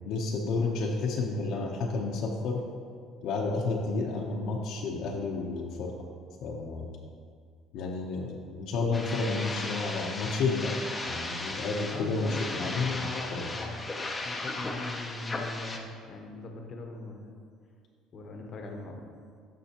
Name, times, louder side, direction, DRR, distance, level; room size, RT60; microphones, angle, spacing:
voice 1, 0.0-2.6 3.2-6.0 6.4-6.9 7.7-10.8 11.1-13.5, left 3 dB, 65° left, -1 dB, 0.8 m, -31 dB
sound 1, 8.9-15.8, left 2 dB, 15° left, 0.7 m, -36 dB
voice 2, 11.9-17.3 18.1-19.1, left 3 dB, 45° left, 3 dB, 0.9 m, -40 dB
12.0 x 5.4 x 3.0 m, 2.1 s
cardioid pair, 130°, 0 cm